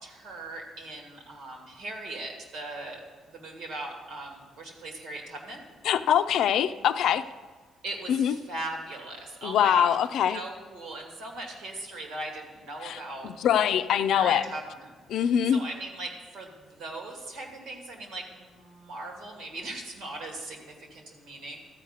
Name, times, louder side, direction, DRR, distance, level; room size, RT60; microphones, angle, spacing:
voice 1, 0.0-3.0 3.3-5.6 7.8-10.0 10.3-13.3 14.1-21.6, right 2 dB, 85° right, 1 dB, 2.6 m, -39 dB
voice 2, 5.8-7.2 8.1-8.3 9.4-10.4 12.8-14.4 15.1-15.6, left 9 dB, 80° left, 11 dB, 0.5 m, -24 dB
13.5 x 4.9 x 8.1 m, 1.4 s
cardioid pair, 90°, 0 cm